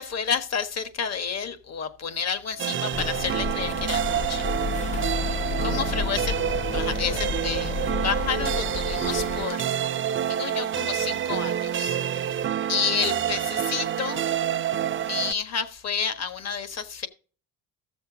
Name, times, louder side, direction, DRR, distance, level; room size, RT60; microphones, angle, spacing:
voice 1, 0.0-4.5 5.1-6.4 6.7-7.8 8.0-9.6 10.3-12.0 12.7-14.2 15.0-17.1, left 6 dB, 45° left, 1.5 m, -30 dB
sound 1, 2.6-15.3, right 10 dB, 35° right, 0.5 m, -28 dB
sound 2, 2.9-9.5, left 5 dB, 20° left, 0.4 m, -31 dB
14.5 x 7.0 x 3.8 m
cardioid pair, 110°, 36 cm